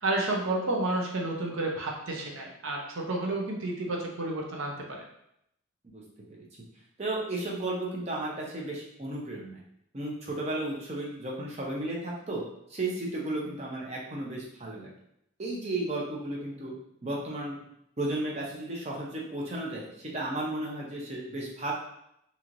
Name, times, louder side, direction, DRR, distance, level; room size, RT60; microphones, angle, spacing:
voice 1, 0.0-5.0, right 2 dB, 70° right, 0 dB, 0.7 m, -31 dB
voice 2, 7.0-9.6 9.9-12.4 12.7-14.9 15.4-16.7 17.0-17.6 18.0-21.7, right 2 dB, 30° right, -3 dB, 0.6 m, -34 dB
3.0 x 2.8 x 2.5 m, 0.77 s
head